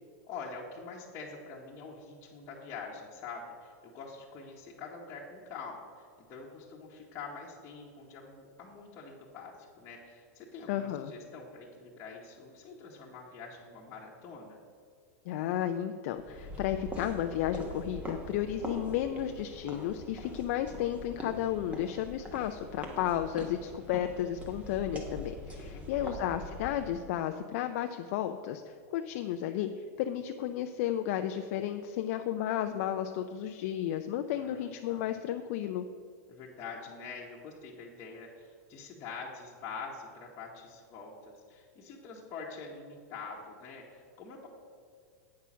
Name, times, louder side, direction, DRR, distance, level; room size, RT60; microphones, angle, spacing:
voice 1, 0.2-14.6 25.7-26.4 34.3-35.0 36.3-44.5, left 4 dB, 35° left, -5 dB, 1.2 m, -45 dB
voice 2, 10.7-11.1 15.3-35.9, left 11 dB, 55° left, 6 dB, 0.4 m, -33 dB
sound 1, 16.2-27.1, equal, 15° right, 1.2 m, -43 dB
8.5 x 5.7 x 6.1 m, 2.2 s
supercardioid pair, 145°, 9 cm